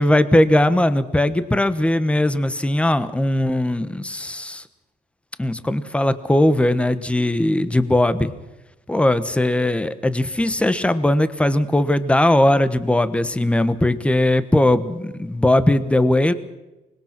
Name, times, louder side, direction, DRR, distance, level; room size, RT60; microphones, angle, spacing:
voice 1, 0.0-4.6 5.4-8.3 8.9-16.3, left 1 dB, 5° left, 13 dB, 1.2 m, -19 dB
24.5 x 20.5 x 6.0 m, 1.0 s
cardioid pair, 110°, 17 cm